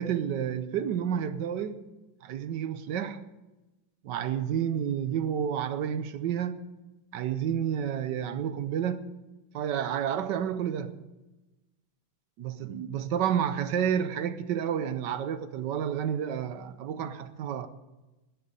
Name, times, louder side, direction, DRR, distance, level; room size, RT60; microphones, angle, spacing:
voice 1, 0.0-1.8 2.2-3.2 4.0-6.7 7.1-9.1 9.5-10.9 12.4-17.7, right 9 dB, 70° right, 1.3 m, -30 dB
19.5 x 6.9 x 5.4 m
omnidirectional pair, 2.1 m